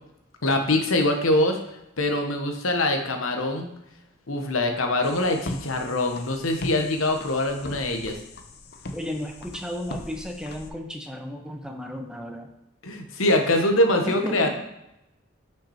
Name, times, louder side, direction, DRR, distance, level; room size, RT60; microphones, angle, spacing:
voice 1, 0.4-1.6 2.0-3.7 4.3-8.2 12.8-14.5, left 1 dB, 80° left, 4 dB, 1.1 m, -23 dB
sound 1, 5.0-10.7, left 2 dB, 50° left, 0.6 m, -38 dB
voice 2, 8.9-12.5 14.0-14.5, equal, 5° right, 3 dB, 0.7 m, -33 dB
5.9 x 5.8 x 4.3 m, 0.86 s
head